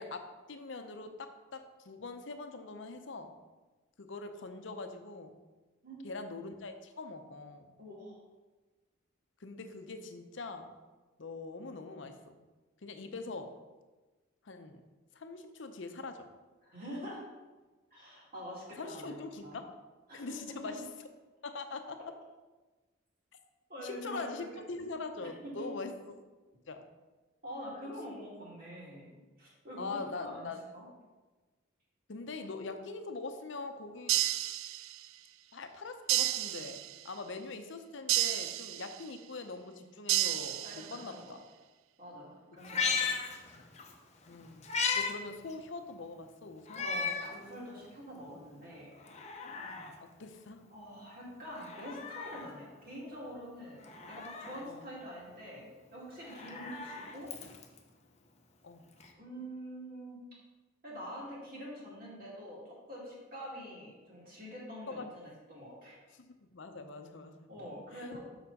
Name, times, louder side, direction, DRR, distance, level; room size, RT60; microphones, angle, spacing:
voice 1, 0.0-3.3 4.0-5.3 6.0-7.7 9.4-10.7 11.2-12.4 12.8-13.5 14.4-14.8 15.1-16.3 18.8-19.7 20.1-20.9 21.4-22.0 23.8-25.9 26.7-26.8 29.8-30.6 32.1-34.5 35.5-41.4 42.6-42.8 44.3-44.7 44.9-46.9 49.7-49.9 50.2-50.6 54.6-54.8 58.6-58.8 64.9-65.1 66.1-67.5, left 3 dB, 65° left, 7 dB, 0.7 m, -43 dB
voice 2, 5.8-6.1 7.8-8.2 16.6-17.2 17.9-19.1 19.4-19.6 20.1-20.7 23.7-24.3 25.2-25.7 27.4-30.8 40.6-41.3 42.0-43.1 46.8-48.9 50.7-57.3 59.2-60.2 60.8-66.0 67.5-68.2, equal, 45° right, -5 dB, 2.5 m, -45 dB
sound 1, 34.1-35.2 36.1-37.1 38.1-39.1 40.1-41.1, right 14 dB, 85° right, 0.3 m, -32 dB
Meow, 42.6-43.9 44.3-45.1 45.5-45.6 46.7-47.3 47.9-48.0 48.9-49.9 51.5-52.5 53.8-54.6 56.1-57.8 59.0-59.1, left 5 dB, 35° left, 0.7 m, -36 dB
6.8 x 6.1 x 4.1 m, 1.2 s
head